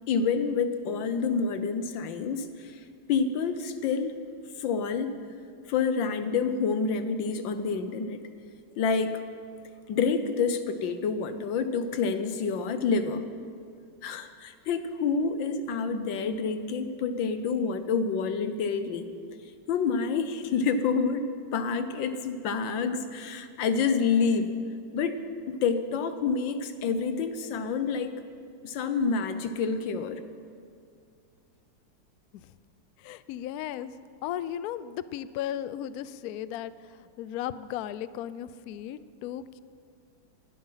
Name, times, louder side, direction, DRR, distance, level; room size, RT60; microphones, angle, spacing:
voice 1, 0.1-2.8 3.1-4.1 4.6-5.1 5.7-8.2 8.8-9.3 9.9-13.2 14.0-19.1 19.7-21.2 21.5-24.5 24.9-28.2 28.6-30.2, left 5 dB, 70° left, 10 dB, 1.6 m, -28 dB
voice 2, 33.0-33.9 34.2-39.6, left 11 dB, 90° left, 15 dB, 0.8 m, -36 dB
20.5 x 12.0 x 5.7 m, 2.3 s
omnidirectional pair, 2.2 m